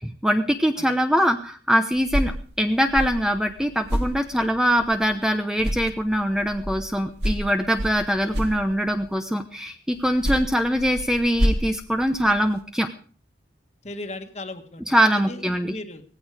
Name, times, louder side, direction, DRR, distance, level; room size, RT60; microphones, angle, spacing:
voice 1, 0.0-12.9 14.9-15.7, equal, 5° right, 6 dB, 0.8 m, -23 dB
sound 1, 1.9-5.3 5.6-9.1 10.0-12.6, equal, 65° right, 3.1 m, -30 dB
voice 2, 13.8-14.8 15.1-16.0, left 2 dB, 35° left, 7 dB, 1.7 m, -36 dB
17.5 x 15.5 x 4.9 m, 0.43 s
head